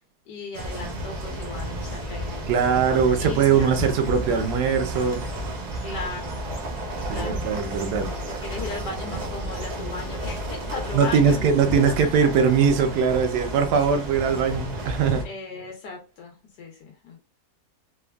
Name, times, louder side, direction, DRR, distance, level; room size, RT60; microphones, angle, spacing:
voice 1, 0.3-3.8 5.8-6.4 7.1-7.4 8.4-11.4 15.2-17.2, left 4 dB, 85° left, 1.2 m, -37 dB
sound 1, 0.5-15.2, right 1 dB, 55° right, 0.8 m, -32 dB
voice 2, 2.5-5.2 7.1-8.1 10.9-15.3, right 6 dB, 80° right, 1.1 m, -21 dB
3.4 x 2.2 x 2.2 m
omnidirectional pair, 1.8 m